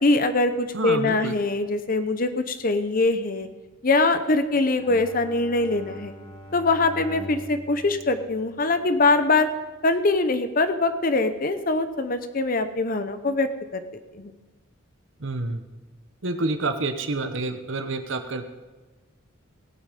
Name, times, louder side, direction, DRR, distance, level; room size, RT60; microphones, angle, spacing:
voice 1, 0.0-3.5 3.8-6.1 6.5-9.5 9.8-13.8 14.1-14.3, left 3 dB, 40° left, 10 dB, 0.8 m, -23 dB
voice 2, 0.7-1.3 15.2-15.6 16.2-18.4, right 2 dB, 65° right, 8 dB, 1.0 m, -28 dB
Bowed string instrument, 4.8-9.2, equal, 25° left, 2.0 m, -42 dB
17.5 x 8.8 x 5.2 m, 1.2 s
head